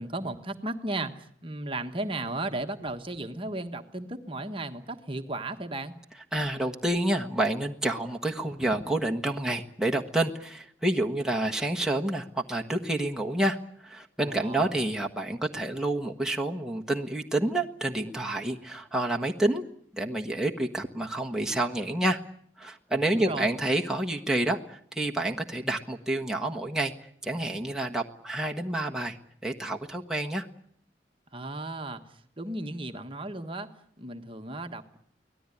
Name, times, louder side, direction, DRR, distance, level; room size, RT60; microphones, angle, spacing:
voice 1, 0.0-5.9 14.2-14.7 23.1-23.5 31.3-32.0 32.4-33.7 34.0-35.0, right 2 dB, 30° right, 6 dB, 1.4 m, -35 dB
voice 2, 6.3-13.6 13.8-19.6 19.9-22.2 22.6-26.9 27.2-29.2 29.4-30.5, right 1 dB, 5° right, 0 dB, 1.4 m, -28 dB
24.5 x 18.0 x 9.9 m, 0.67 s
head